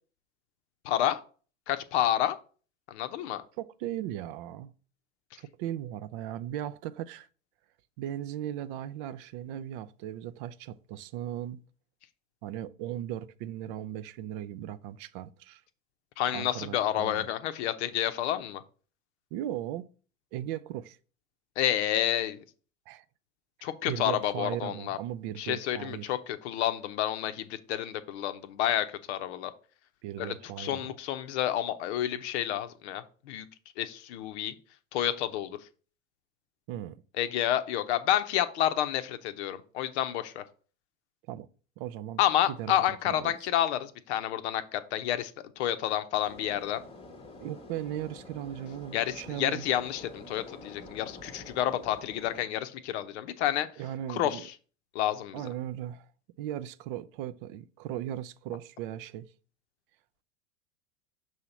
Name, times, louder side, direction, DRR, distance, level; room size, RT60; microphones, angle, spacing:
voice 1, 0.8-1.2 1.7-2.3 2.9-3.4 16.2-18.6 21.6-22.4 23.6-25.0 25.4-29.5 30.2-33.5 33.8-34.5 34.9-35.6 37.2-40.4 42.2-45.3 45.6-46.8 48.9-53.7 54.1-54.4 54.9-55.4, left 12 dB, 55° left, 0.7 m, -29 dB
voice 2, 3.6-4.7 5.4-7.3 8.0-11.6 12.4-15.6 16.3-17.3 19.3-19.9 20.3-21.0 22.9-23.0 23.6-26.2 30.0-31.0 36.7-37.0 41.3-41.5 41.8-42.2 42.5-43.3 47.4-49.6 53.8-54.4 55.3-56.1 56.4-59.3, right 12 dB, 45° right, 0.4 m, -37 dB
sound 1, 46.2-52.4, left 2 dB, 15° left, 0.9 m, -48 dB
6.2 x 2.9 x 5.6 m
figure-of-eight pair, 80°, 40 cm